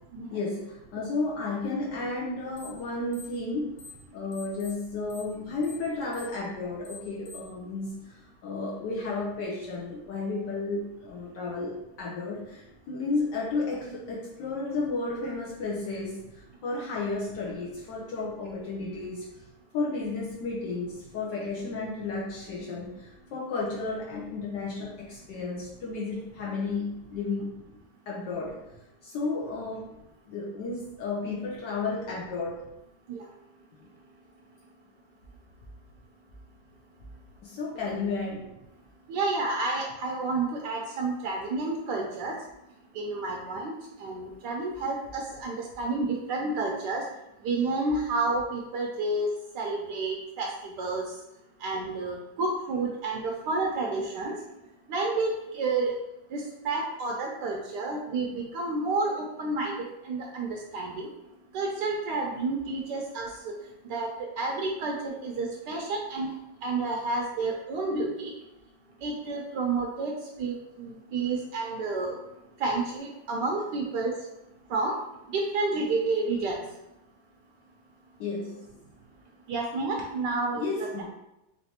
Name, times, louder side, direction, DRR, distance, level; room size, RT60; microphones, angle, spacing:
voice 1, 0.3-3.8 4.1-19.3 19.7-27.5 28.1-28.6 29.0-29.9 30.3-32.6 37.4-38.5 78.2-78.7 80.5-81.1, left 3 dB, 70° left, -5 dB, 1.3 m, -33 dB
sound 1, 2.5-2.8 3.1-4.0 4.3-7.6, left 4 dB, 90° left, 1.6 m, -48 dB
voice 2, 39.1-42.3 42.9-43.7 44.0-47.0 47.4-49.3 49.5-50.5 50.8-51.1 51.6-54.4 54.9-55.9 56.3-59.7 60.0-61.1 61.5-63.5 63.8-64.1 64.4-66.3 66.6-68.3 69.0-72.2 72.6-74.1 74.7-74.9 75.3-76.6 79.5-80.9, right 3 dB, 75° right, 0 dB, 1.1 m, -30 dB
4.1 x 3.3 x 2.8 m, 0.90 s
omnidirectional pair, 2.0 m